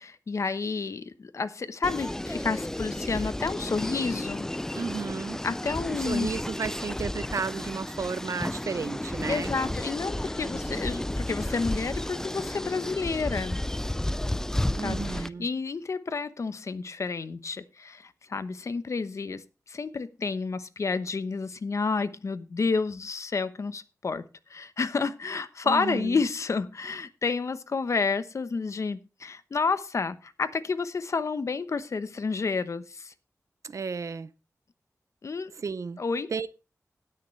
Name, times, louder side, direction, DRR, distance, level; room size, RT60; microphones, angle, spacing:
voice 1, 0.0-4.5 5.4-6.3 9.3-13.6 14.8-24.2 24.5-33.1 35.2-35.5 36.0-36.5, left 4 dB, 60° left, 0.9 m, -30 dB
sound 1, 1.8-15.3, left 1 dB, 10° left, 0.4 m, -32 dB
voice 2, 4.7-5.4 6.1-9.5 14.8-15.5 25.6-26.2 33.6-34.3 35.6-36.0 36.3-36.5, right 5 dB, 65° right, 0.6 m, -33 dB
19.0 x 6.7 x 3.2 m
wide cardioid pair, 90°, 6 cm